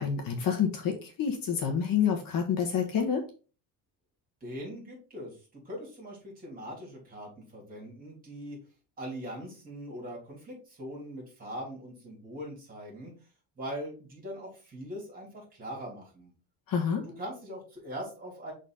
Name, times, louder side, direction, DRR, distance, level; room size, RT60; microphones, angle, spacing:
voice 1, 0.0-3.2 16.7-17.0, left 7 dB, 50° left, 2 dB, 1.4 m, -28 dB
voice 2, 4.4-8.6 9.0-13.1 13.6-16.3 17.0-18.5, equal, 20° right, -3 dB, 3.2 m, -41 dB
6.3 x 4.0 x 4.0 m, 0.36 s
cardioid pair, 175°, 42 cm